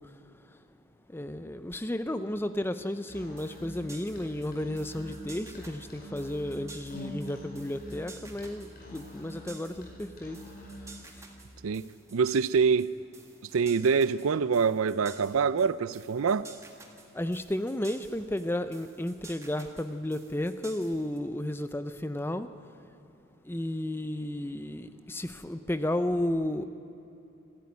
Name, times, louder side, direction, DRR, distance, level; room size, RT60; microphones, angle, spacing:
voice 1, 1.1-10.4 17.1-22.5 23.5-26.7, left 1 dB, 10° left, 0.5 m, -33 dB
Musical instrument, 3.0-11.0, equal, 40° left, 5.9 m, -45 dB
sound 1, 3.1-21.2, right 4 dB, 15° right, 1.7 m, -52 dB
voice 2, 11.6-12.9 13.5-16.5, right 5 dB, 70° right, 0.4 m, -25 dB
26.0 x 13.5 x 9.6 m
head